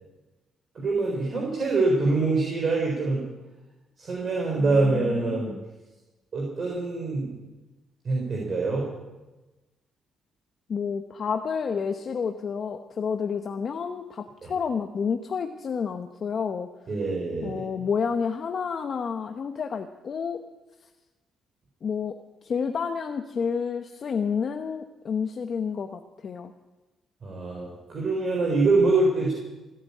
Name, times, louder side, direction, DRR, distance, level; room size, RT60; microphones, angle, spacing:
voice 1, 0.7-3.2 4.0-5.5 6.3-7.3 8.0-8.8 14.4-14.5 16.9-17.6 27.2-29.3, right 3 dB, 45° right, -1 dB, 4.2 m, -24 dB
voice 2, 4.6-5.6 10.7-16.7 17.4-20.4 21.8-22.1 22.4-26.5, left 6 dB, 50° left, 6 dB, 0.9 m, -30 dB
17.5 x 9.1 x 8.4 m, 1.1 s
cardioid pair, 90°, 0 cm